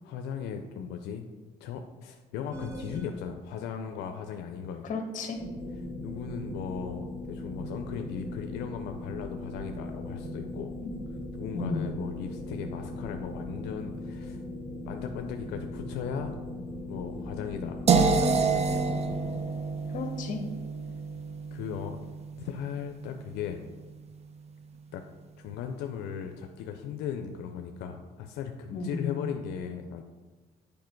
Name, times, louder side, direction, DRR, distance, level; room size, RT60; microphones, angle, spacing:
voice 1, 0.0-1.3 1.6-4.9 6.0-10.7 11.3-14.4 14.9-16.3 16.9-19.0 21.5-22.0 22.4-23.6 24.9-25.0 25.4-30.0, left 7 dB, 85° left, 5 dB, 0.5 m, -37 dB
sound 1, 2.5-3.2 5.4-19.3, left 1 dB, 15° right, 1.1 m, -39 dB
voice 2, 4.8-5.4 10.8-10.9 11.5-11.9 19.9-20.4 28.7-29.4, left 4 dB, 50° left, 5 dB, 1.3 m, -33 dB
sound 2, 17.9-23.8, right 5 dB, 40° right, 0.6 m, -28 dB
7.3 x 5.0 x 4.5 m, 1.3 s
cardioid pair, 110°, 17 cm